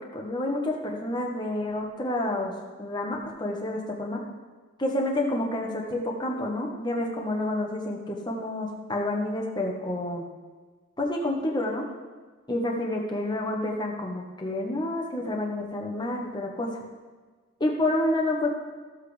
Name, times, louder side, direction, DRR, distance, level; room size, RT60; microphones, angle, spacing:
voice 1, 0.1-2.5 2.8-4.2 4.8-10.3 11.0-11.9 12.5-16.7 17.6-18.5, left 1 dB, 20° left, -1 dB, 1.2 m, -29 dB
14.0 x 7.5 x 3.4 m, 1.4 s
head